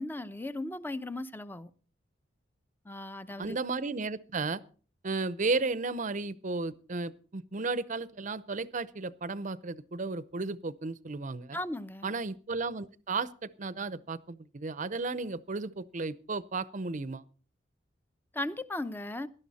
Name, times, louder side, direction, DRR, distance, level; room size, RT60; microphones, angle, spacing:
voice 1, 0.0-1.7 2.8-3.6 11.5-12.1 18.3-19.3, left 1 dB, 10° left, 0.7 m, -37 dB
voice 2, 3.4-4.6 5.0-11.6 12.0-17.2, right 3 dB, 45° right, 0.7 m, -34 dB
17.5 x 12.0 x 4.2 m
head